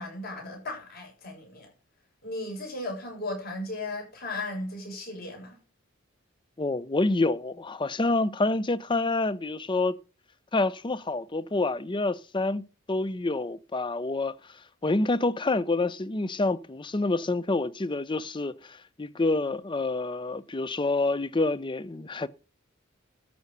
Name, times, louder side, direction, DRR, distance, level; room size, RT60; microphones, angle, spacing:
voice 1, 0.0-1.7 2.2-5.6, left 2 dB, 50° left, 7.4 m, -36 dB
voice 2, 6.6-10.0 10.5-14.4 14.8-22.3, left 2 dB, 25° left, 0.5 m, -27 dB
13.0 x 6.6 x 6.8 m
head